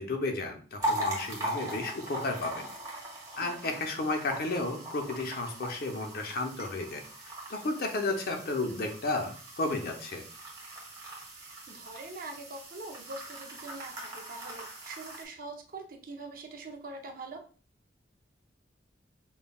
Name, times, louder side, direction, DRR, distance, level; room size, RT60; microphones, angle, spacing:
voice 1, 0.0-2.7 3.4-7.0 7.5-10.2, left 2 dB, 55° left, 4 dB, 0.6 m, -33 dB
sound 1, 0.8-15.2, equal, 20° right, 1.1 m, -40 dB
voice 2, 3.4-3.8 11.4-17.4, right 3 dB, 50° right, 3 dB, 0.6 m, -44 dB
5.3 x 2.3 x 2.3 m, 0.40 s
head